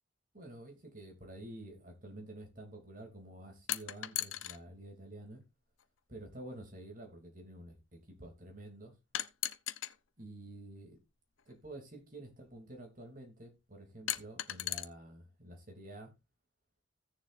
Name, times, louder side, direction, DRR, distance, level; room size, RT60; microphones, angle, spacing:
voice 1, 0.3-5.4 6.1-8.9 10.2-11.0 11.5-16.1, right 1 dB, 40° right, 2.8 m, -49 dB
sound 1, 3.7-4.6 5.8-5.9 9.1-9.9 11.4-11.5 14.1-14.8, left 13 dB, 80° left, 0.7 m, -36 dB
16.0 x 7.0 x 2.5 m
head